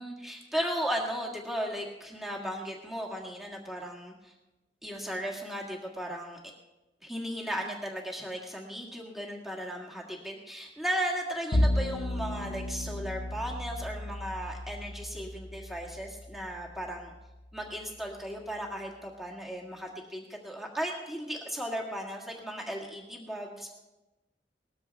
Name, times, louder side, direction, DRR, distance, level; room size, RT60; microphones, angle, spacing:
voice 1, 0.0-4.3 4.8-6.4 7.0-17.1 17.5-23.7, equal, ahead, -2 dB, 1.8 m, -36 dB
Bowed string instrument, 11.5-18.0, left 1 dB, 65° left, 0.8 m, -33 dB
19.5 x 14.0 x 3.5 m, 1.0 s
head